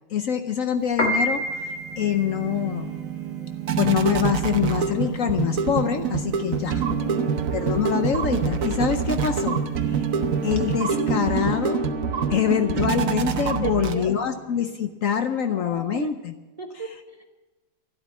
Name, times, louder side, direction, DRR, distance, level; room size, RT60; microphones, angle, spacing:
voice 1, 0.1-2.9 3.8-6.8 7.5-9.6 9.8-10.1 10.4-11.8 12.3-16.3, left 8 dB, 75° left, 8 dB, 0.7 m, -25 dB
Piano, 0.8-11.2, equal, 40° left, 1.7 m, -32 dB
sound 1, 1.5-14.4, right 6 dB, 55° right, 1.0 m, -26 dB
voice 2, 7.0-7.4 13.6-14.4 15.3-16.2 16.6-17.2, right 2 dB, 75° right, 3 dB, 0.3 m, -35 dB
12.0 x 12.0 x 7.1 m, 1.2 s
omnidirectional pair, 2.2 m